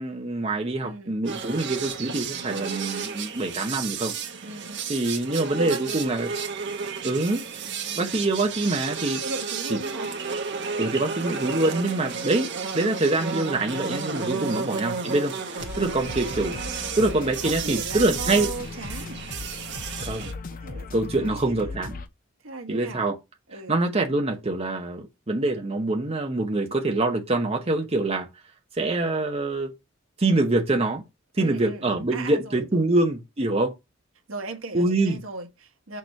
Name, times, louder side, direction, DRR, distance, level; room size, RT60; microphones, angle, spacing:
voice 1, 0.0-4.1 4.9-6.3 7.0-7.4 8.0-9.2 9.7-9.8 10.8-16.6 17.0-18.5 20.0-20.3 20.9-22.0 22.7-23.1 23.7-28.3 28.8-29.7 30.2-31.0 31.4-33.7 34.7-35.2, right 2 dB, 30° right, 0.9 m, -25 dB
voice 2, 0.8-1.2 2.3-2.7 4.4-4.9 5.6-5.8 7.6-8.0 9.2-10.1 11.5-11.8 14.3-14.6 17.4-19.2 20.5-21.8 22.4-23.0 23.5-23.8 31.4-32.8 34.3-36.0, right 2 dB, 80° right, 1.5 m, -37 dB
sound 1, 1.2-20.3, right 5 dB, 60° right, 1.3 m, -32 dB
sound 2, 15.6-22.1, left 3 dB, 45° left, 0.7 m, -37 dB
6.5 x 3.2 x 5.2 m
head